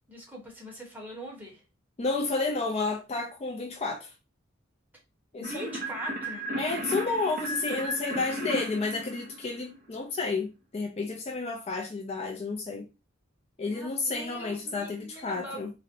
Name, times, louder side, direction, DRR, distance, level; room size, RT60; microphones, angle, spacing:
voice 1, 0.1-1.6 5.4-6.6 13.6-15.7, equal, 10° right, 1.0 m, -42 dB
voice 2, 2.0-4.1 5.3-5.7 6.6-12.9 13.6-15.7, left 3 dB, 30° left, 0.4 m, -31 dB
sound 1, 5.4-9.9, right 1 dB, 45° right, 0.8 m, -35 dB
3.9 x 2.0 x 2.6 m
head